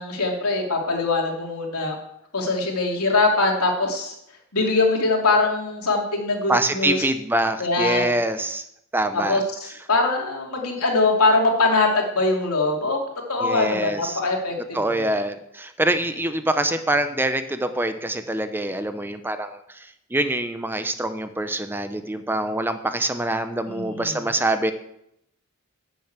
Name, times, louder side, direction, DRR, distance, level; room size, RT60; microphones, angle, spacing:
voice 1, 0.0-2.0 2.3-4.1 4.5-7.0 7.6-8.0 9.3-13.0 13.3-14.8 23.7-24.1, left 3 dB, 90° left, 1 dB, 3.0 m, -22 dB
voice 2, 6.5-8.6 8.9-9.4 13.4-14.2 14.7-24.7, right 1 dB, 10° right, 9 dB, 0.6 m, -25 dB
11.5 x 7.0 x 8.1 m, 0.78 s
head